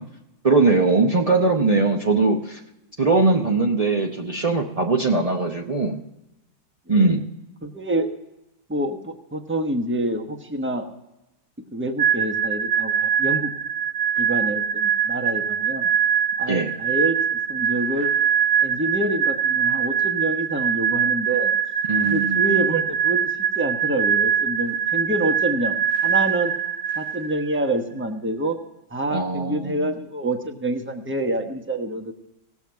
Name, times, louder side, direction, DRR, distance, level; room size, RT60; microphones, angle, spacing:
voice 1, 0.4-2.6 3.0-6.0 6.9-7.2 16.5-16.7 21.9-22.6 29.1-29.9, right 3 dB, 50° right, 0 dB, 0.4 m, -20 dB
voice 2, 6.9-7.2 7.6-8.1 8.7-10.9 11.7-13.5 14.2-15.9 16.4-18.1 18.6-21.5 22.0-25.8 26.0-26.5 27.0-28.6 28.9-32.1, right 1 dB, 10° right, 4 dB, 0.7 m, -27 dB
sound 1, 12.0-27.6, right 8 dB, 70° right, 0.8 m, -23 dB
18.0 x 7.3 x 4.6 m, 0.92 s
omnidirectional pair, 2.1 m